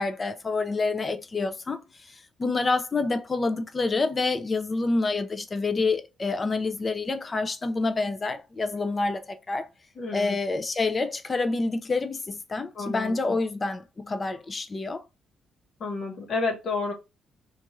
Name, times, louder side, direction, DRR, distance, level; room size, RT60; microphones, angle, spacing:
voice 1, 0.0-1.8 2.1-9.7 10.1-15.0, left 3 dB, 30° left, 0.5 m, -27 dB
voice 2, 10.0-10.4 12.7-13.4 15.8-16.9, left 3 dB, 60° left, 1.1 m, -30 dB
2.5 x 2.5 x 3.0 m
cardioid pair, 90°, 0 cm